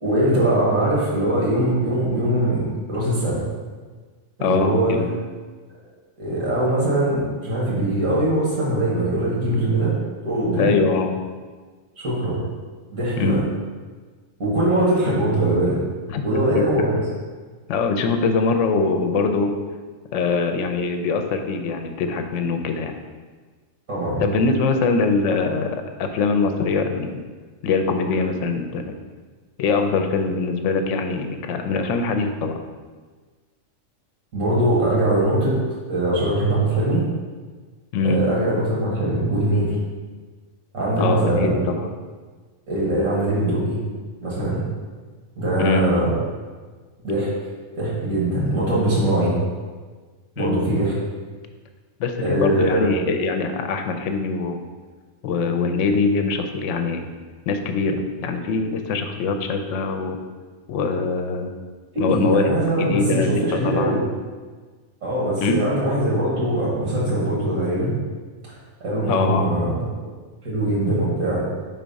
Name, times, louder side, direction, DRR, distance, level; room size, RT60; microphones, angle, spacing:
voice 1, 0.0-3.4 4.4-4.9 6.2-10.0 10.2-10.8 12.0-12.4 12.9-13.4 14.4-15.8 16.2-17.0 23.9-24.2 34.3-35.6 35.9-37.1 38.0-39.8 40.7-41.6 42.7-43.8 44.2-44.7 45.4-46.1 47.0-47.3 47.8-49.4 50.4-51.0 52.2-52.9 61.9-64.0 65.0-67.9 68.8-70.1 70.4-71.4, right 1 dB, 90° right, -7 dB, 1.8 m, -21 dB
voice 2, 4.4-5.1 10.6-11.2 13.2-13.4 16.1-16.2 16.5-16.6 17.7-19.5 20.1-22.9 24.2-27.1 27.6-28.8 29.6-32.5 37.9-38.2 41.0-41.8 45.6-45.9 50.4-50.6 52.0-54.6 55.2-57.1 57.5-60.2 60.7-61.5 62.0-63.9 65.4-65.6 69.1-69.5, left 4 dB, 70° left, 6 dB, 0.9 m, -23 dB
4.6 x 4.0 x 5.2 m, 1.4 s
omnidirectional pair, 1.4 m